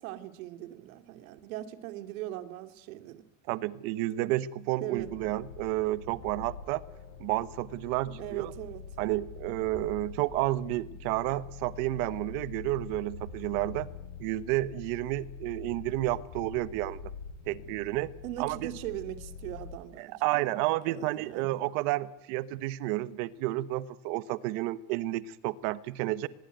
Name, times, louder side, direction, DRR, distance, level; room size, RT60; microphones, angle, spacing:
voice 1, 0.0-3.2 4.8-5.1 8.0-8.8 18.2-21.6, right 14 dB, 80° right, 9 dB, 2.8 m, -40 dB
voice 2, 3.5-6.8 7.2-8.5 9.0-13.9 14.2-17.0 17.5-18.1 18.4-18.7 20.0-26.3, right 16 dB, 50° right, 16 dB, 1.2 m, -31 dB
sound 1, 5.0-19.8, left 5 dB, 65° left, 6.1 m, -45 dB
24.5 x 21.5 x 9.2 m, 0.83 s
cardioid pair, 170°, 41 cm